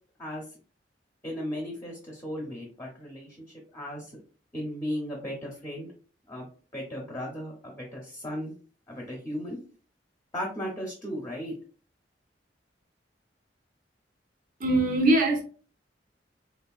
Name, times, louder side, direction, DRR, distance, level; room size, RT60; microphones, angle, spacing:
voice 1, 1.2-4.1 4.5-5.9 6.3-6.5 6.7-8.5 8.9-9.6 10.3-11.5, equal, 20° left, 0.6 m, -36 dB
voice 2, 14.6-15.4, right 2 dB, 50° right, 0.7 m, -22 dB
3.4 x 2.1 x 2.3 m
head